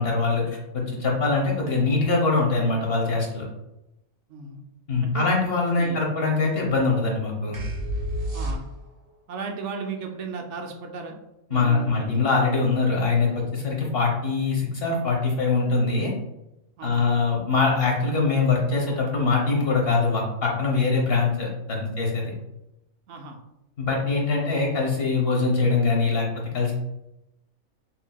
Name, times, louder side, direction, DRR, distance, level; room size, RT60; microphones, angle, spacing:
voice 1, 0.0-3.5 4.9-7.6 11.5-16.1 16.8-22.3 23.8-26.3 26.5-26.7, left 4 dB, 50° left, -1 dB, 1.0 m, -23 dB
voice 2, 4.3-4.6 5.0-5.3 5.8-6.0 8.3-8.6 9.3-11.1 11.5-12.3 16.8-17.1 23.1-23.4 24.4-24.5, right 4 dB, 65° right, 3 dB, 0.8 m, -36 dB
sound 1, 7.5-9.1, equal, 40° right, 1.0 m, -29 dB
5.6 x 2.6 x 2.2 m, 0.89 s
omnidirectional pair, 1.5 m